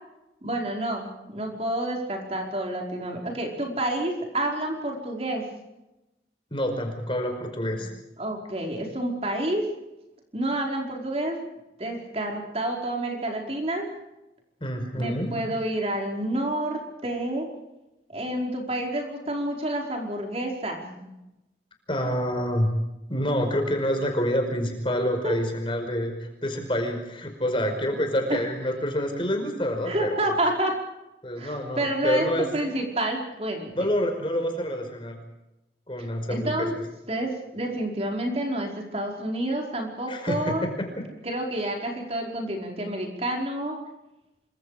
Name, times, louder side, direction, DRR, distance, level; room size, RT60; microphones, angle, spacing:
voice 1, 0.4-5.4 8.2-9.6 10.3-11.4 11.8-13.9 14.9-17.5 18.1-21.1 25.2-25.3 28.3-28.4 29.9-30.7 31.3-33.7 36.3-36.7 37.1-40.7 41.2-43.8, right 1 dB, 35° right, 1 dB, 5.0 m, -29 dB
voice 2, 6.5-7.9 14.6-15.3 21.9-22.7 23.1-30.2 31.2-32.5 33.7-35.2 35.9-36.8 40.1-41.1, equal, 30° left, 5 dB, 5.2 m, -27 dB
27.0 x 25.0 x 5.1 m, 0.95 s
head